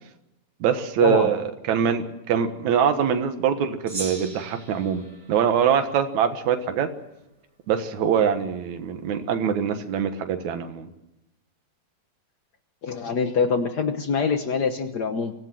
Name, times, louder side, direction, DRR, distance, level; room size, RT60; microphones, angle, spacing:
voice 1, 0.6-5.0 5.3-6.9 7.7-10.9, right 8 dB, 70° right, 7 dB, 2.7 m, -23 dB
Gong, 3.9-6.5, right 2 dB, 20° right, 5.0 m, -39 dB
voice 2, 12.8-15.3, left 5 dB, 85° left, 7 dB, 0.9 m, -24 dB
25.0 x 16.0 x 7.7 m, 0.92 s
omnidirectional pair, 3.6 m